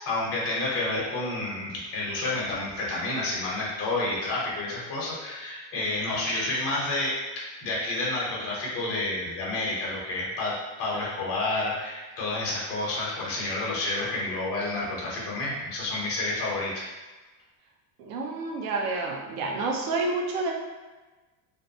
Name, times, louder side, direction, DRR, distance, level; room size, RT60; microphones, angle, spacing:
voice 1, 0.1-16.9, left 2 dB, 30° left, -5 dB, 0.7 m, -30 dB
voice 2, 18.0-20.5, right 3 dB, 90° right, 0 dB, 0.7 m, -29 dB
2.6 x 2.2 x 2.6 m, 1.2 s
cardioid pair, 165°, 47 cm